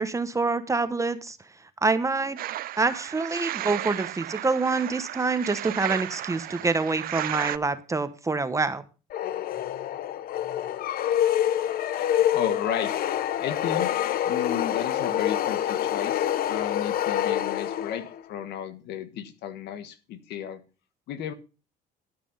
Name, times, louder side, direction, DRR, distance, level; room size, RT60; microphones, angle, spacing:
voice 1, 0.0-1.4 1.8-2.4 2.8-8.8, right 3 dB, 20° right, 12 dB, 1.0 m, -26 dB
sound 1, 2.4-7.6, right 14 dB, 60° right, 0.5 m, -34 dB
sound 2, 9.1-18.2, left 11 dB, 60° left, 0.7 m, -26 dB
voice 2, 12.0-12.9 13.4-13.9 14.2-20.6 21.1-21.3, left 9 dB, 80° left, 11 dB, 1.5 m, -34 dB
13.0 x 6.1 x 5.6 m, 0.33 s
cardioid pair, 110°, 17 cm